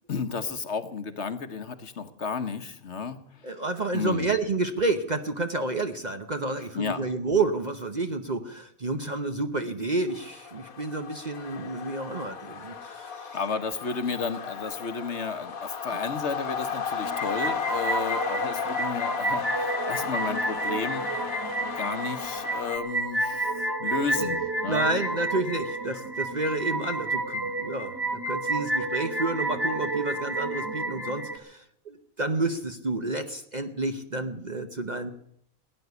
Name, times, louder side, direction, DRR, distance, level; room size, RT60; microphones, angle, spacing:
voice 1, 0.1-3.6 3.9-4.3 6.7-7.0 13.3-21.1 21.5-24.9, left 5 dB, 55° left, 10 dB, 1.3 m, -33 dB
voice 2, 3.4-13.4 24.2-24.3 24.6-35.1, right 2 dB, 35° right, 7 dB, 0.9 m, -30 dB
sound 1, 10.1-22.8, left 6 dB, 80° left, 1.8 m, -34 dB
sound 2, 17.0-31.4, right 2 dB, 15° right, 1.8 m, -30 dB
17.0 x 9.9 x 8.1 m, 0.69 s
omnidirectional pair, 1.5 m